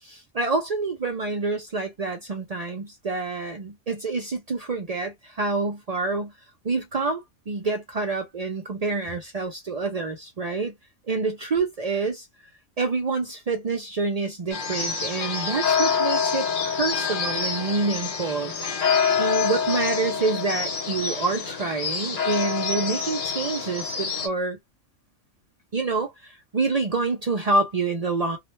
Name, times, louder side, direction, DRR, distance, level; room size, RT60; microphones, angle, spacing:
voice 1, 0.0-6.3 6.6-10.7 11.1-12.3 12.8-18.5 19.2-24.6 25.7-28.4, right 3 dB, 75° right, 0.3 m, -27 dB
sound 1, 14.5-24.3, left 6 dB, 70° left, 1.1 m, -26 dB
2.3 x 2.1 x 3.0 m
omnidirectional pair, 1.4 m